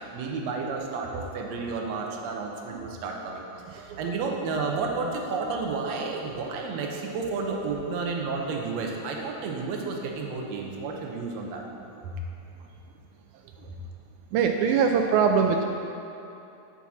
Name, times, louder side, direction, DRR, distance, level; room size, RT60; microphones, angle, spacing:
voice 1, 0.1-3.4 3.7-11.6 12.0-12.2 13.7-13.8, right 4 dB, 70° right, 0 dB, 1.7 m, -31 dB
voice 2, 14.3-15.6, right 6 dB, 90° right, 3 dB, 1.7 m, -22 dB
7.2 x 5.9 x 7.0 m, 2.7 s
omnidirectional pair, 4.0 m